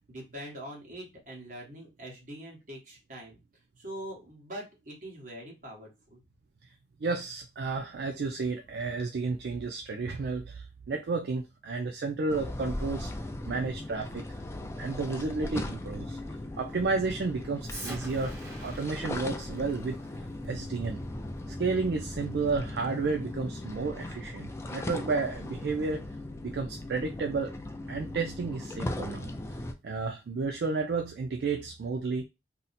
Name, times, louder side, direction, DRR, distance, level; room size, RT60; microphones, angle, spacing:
voice 1, 0.1-3.4 3.8-6.2, right 1 dB, 50° right, 1.2 m, -43 dB
voice 2, 7.0-13.1 13.5-14.4 14.8-16.2 16.6-18.4 18.6-20.0 20.4-21.0 21.5-26.0 26.4-27.5 27.9-29.3 29.8-32.3, right 4 dB, 65° right, 0.4 m, -32 dB
sound 1, 12.3-29.7, left 1 dB, 15° left, 0.3 m, -38 dB
Explosion, 17.7-22.8, right 1 dB, 20° right, 1.1 m, -45 dB
2.7 x 2.1 x 4.0 m
head